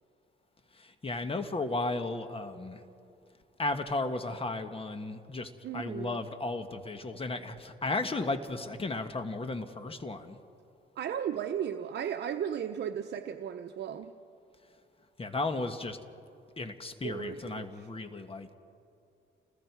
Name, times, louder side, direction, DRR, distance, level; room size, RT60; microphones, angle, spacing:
voice 1, 0.8-2.8 3.6-10.4 15.2-16.0 16.6-18.5, left 2 dB, 30° left, 8 dB, 1.5 m, -34 dB
voice 2, 5.6-6.2 11.0-14.1 17.0-17.9, right 8 dB, 60° right, 6 dB, 0.9 m, -35 dB
29.5 x 20.5 x 4.8 m, 2.5 s
cardioid pair, 90°, 20 cm